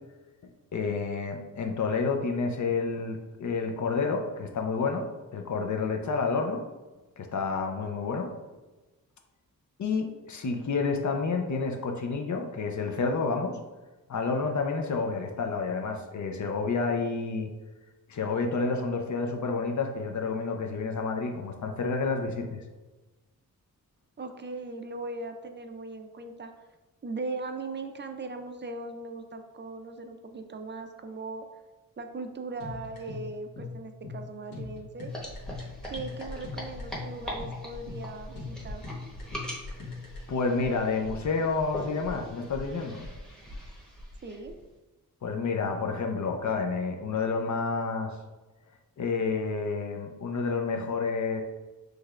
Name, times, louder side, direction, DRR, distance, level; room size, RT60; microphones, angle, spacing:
voice 1, 0.7-5.1 5.3-6.6 7.2-8.3 9.8-13.6 14.1-17.5 18.1-22.6 40.3-43.1 45.2-48.1 49.0-51.4, left 4 dB, 55° left, 4 dB, 0.6 m, -29 dB
voice 2, 24.2-26.5 27.0-31.5 32.0-35.1 35.8-38.8 44.2-44.5, right 3 dB, 30° right, 6 dB, 0.4 m, -39 dB
sound 1, 32.6-40.2, left 4 dB, 75° left, 1.4 m, -41 dB
sound 2, 35.1-44.6, equal, ahead, 1.0 m, -41 dB
6.2 x 3.3 x 2.4 m, 1.2 s
wide cardioid pair, 115°, 36 cm